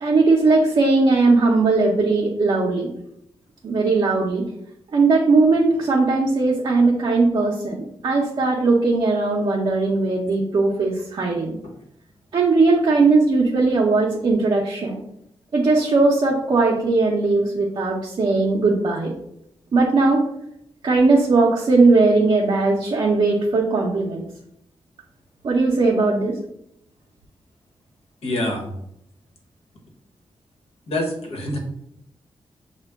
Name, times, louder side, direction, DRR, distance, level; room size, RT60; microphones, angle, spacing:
voice 1, 0.0-2.9 3.6-4.5 4.9-11.6 12.3-15.0 15.5-19.1 19.7-20.3 20.8-24.3 25.4-26.3, right 3 dB, 50° right, -2 dB, 0.6 m, -18 dB
voice 2, 28.2-28.6 30.9-31.6, left 1 dB, 85° left, 1 dB, 1.1 m, -26 dB
6.5 x 2.2 x 3.4 m, 0.77 s
wide cardioid pair, 170°, 10 cm